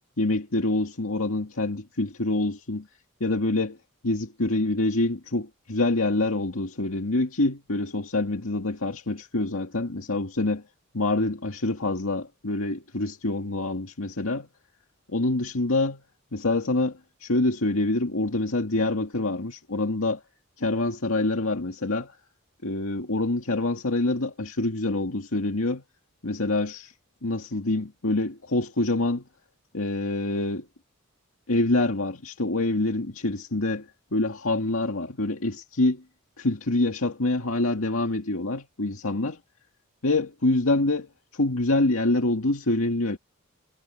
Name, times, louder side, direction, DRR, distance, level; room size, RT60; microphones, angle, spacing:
voice 1, 0.2-2.9 3.2-3.8 4.0-10.6 10.9-14.5 15.1-16.0 16.3-20.2 20.6-22.2 22.6-25.8 26.2-26.9 27.2-29.3 29.7-30.7 31.5-36.0 36.4-39.4 40.0-43.2, left 2 dB, 75° left, 2.1 m, -26 dB
head